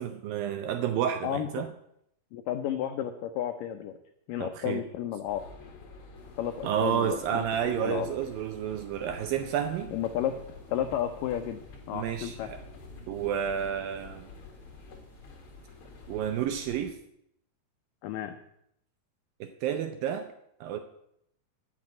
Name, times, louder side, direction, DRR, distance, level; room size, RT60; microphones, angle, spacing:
voice 1, 0.0-1.7 4.4-4.8 6.6-9.9 11.9-12.6 13.1-14.3 16.1-17.0 19.4-20.3 20.6-20.8, right 9 dB, 80° right, 7 dB, 2.1 m, -30 dB
voice 2, 1.2-1.7 2.3-4.0 4.3-5.4 6.4-8.1 9.9-10.4 10.7-11.6 11.9-12.5 18.0-18.3, left 10 dB, 90° left, 7 dB, 1.9 m, -32 dB
sound 1, 5.3-16.9, left 4 dB, 50° left, 1.7 m, -49 dB
sound 2, 6.1-16.9, equal, 35° right, 0.8 m, -56 dB
12.5 x 6.3 x 8.7 m, 0.74 s
omnidirectional pair, 4.8 m